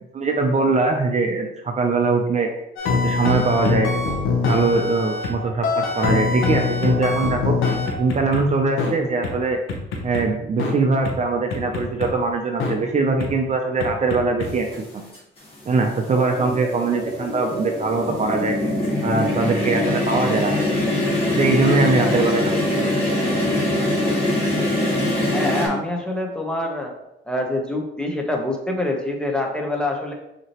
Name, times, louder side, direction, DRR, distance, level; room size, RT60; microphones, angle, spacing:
voice 1, 0.1-2.5 3.0-3.9 4.4-7.6 8.0-9.6 10.0-14.7 14.9-15.0 15.7-18.6 19.0-20.8 21.3-22.5 22.8-23.0, right 3 dB, 35° right, 3 dB, 0.6 m, -21 dB
sound 1, 2.8-5.3 5.6-8.4 8.8-8.9 9.2-9.3 9.7-10.2 10.6-10.7 11.0-11.1 11.5-12.1 12.6-12.7 13.2-13.3 13.8-14.5, left 4 dB, 85° left, 0.8 m, -23 dB
sound 2, 14.7-14.8 15.9-25.7, left 1 dB, 30° left, 1.8 m, -23 dB
voice 2, 25.2-26.9 27.3-30.1, left 1 dB, 5° left, 0 dB, 0.9 m, -25 dB
6.0 x 2.9 x 3.0 m, 0.86 s
cardioid pair, 90°, 20 cm